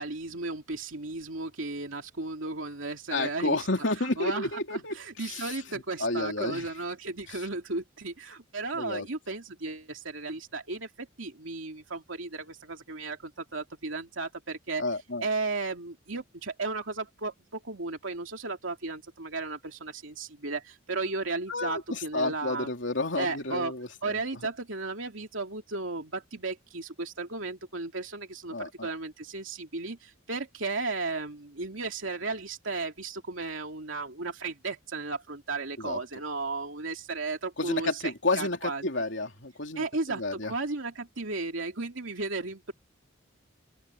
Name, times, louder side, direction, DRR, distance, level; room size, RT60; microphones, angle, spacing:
voice 1, 0.0-3.7 4.0-14.8 15.2-22.7 23.2-23.8 24.0-38.8 39.8-42.7, right 3 dB, 75° right, 2.9 m, -35 dB
voice 2, 3.1-6.6 7.3-7.4 8.7-9.0 14.8-15.3 21.5-24.2 28.5-28.9 35.8-36.0 37.6-40.5, left 2 dB, 65° left, 3.4 m, -31 dB
open air
head